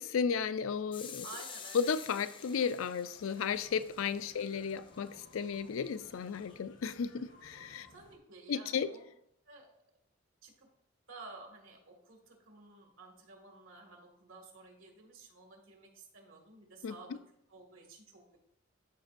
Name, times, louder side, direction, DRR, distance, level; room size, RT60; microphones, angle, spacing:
voice 1, 0.0-1.3 1.7-7.9 8.5-8.9 16.8-17.2, left 6 dB, 85° left, 13 dB, 0.4 m, -34 dB
sound 1, 0.9-6.6, left 7 dB, 25° left, 0.4 m, -51 dB
voice 2, 1.2-1.9 4.4-4.6 7.9-9.1 9.5-9.7 10.4-10.7 11.1-17.2 17.5-18.4, right 3 dB, 85° right, 1 dB, 1.9 m, -53 dB
sound 2, 3.1-8.2, left 2 dB, 65° left, 1.1 m, -60 dB
13.0 x 5.2 x 2.5 m, 0.75 s
head